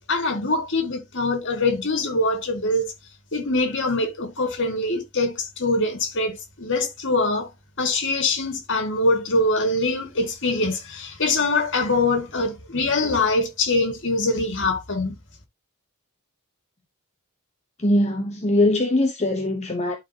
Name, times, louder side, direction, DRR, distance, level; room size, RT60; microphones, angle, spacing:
voice 1, 0.1-2.9 3.3-7.5 7.8-15.2, left 2 dB, 60° left, 2.1 m, -23 dB
voice 2, 17.8-20.0, left 1 dB, 30° left, 1.0 m, -21 dB
11.5 x 4.2 x 2.9 m
head